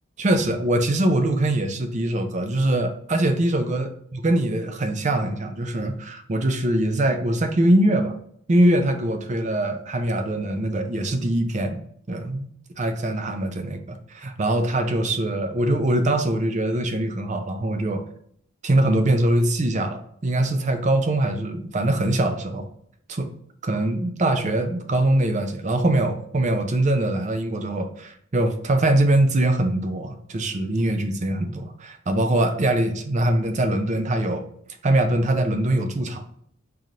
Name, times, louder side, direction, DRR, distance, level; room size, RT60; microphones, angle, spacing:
voice 1, 0.2-8.1 8.5-11.8 12.1-12.5 12.8-18.0 18.6-22.7 23.1-23.3 23.6-34.5 34.8-36.2, right 1 dB, 35° right, 7 dB, 0.5 m, -22 dB
3.8 x 3.3 x 2.7 m, 0.68 s
head